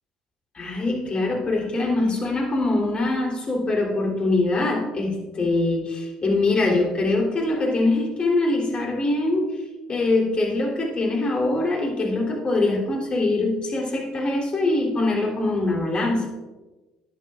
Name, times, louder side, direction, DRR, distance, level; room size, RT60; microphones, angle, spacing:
voice 1, 0.5-9.5 9.9-16.3, left 2 dB, 35° left, -1 dB, 3.5 m, -23 dB
13.5 x 10.0 x 2.5 m, 1.2 s
hypercardioid pair, 55°, 3 cm